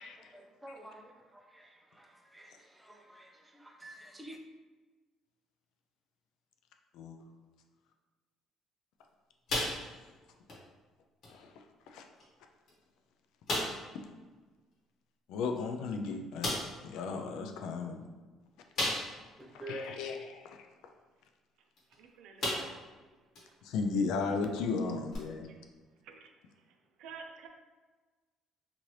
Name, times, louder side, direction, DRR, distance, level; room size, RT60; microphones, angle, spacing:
voice 1, 0.0-4.4 19.4-19.9, right 1 dB, 10° right, 0.5 m, -49 dB
sound 1, 9.5-10.2 10.5-10.7 11.2-11.3 12.2-12.3 12.7-12.8 13.5-13.9 15.6-15.7 16.4-16.8 18.8-19.3 19.8-19.9 21.8-21.9 22.4-22.9 23.4-23.5 25.1-25.2, left 1 dB, 60° left, 1.1 m, -34 dB
voice 2, 15.3-18.0 19.7-20.7 23.6-25.5, left 4 dB, 80° left, 0.3 m, -35 dB
voice 3, 22.0-23.0 23.5-23.6 25.5-25.7 26.0-26.3 26.5-27.5, right 5 dB, 80° right, 0.4 m, -51 dB
2.8 x 2.5 x 3.1 m
cardioid pair, 90°, 0 cm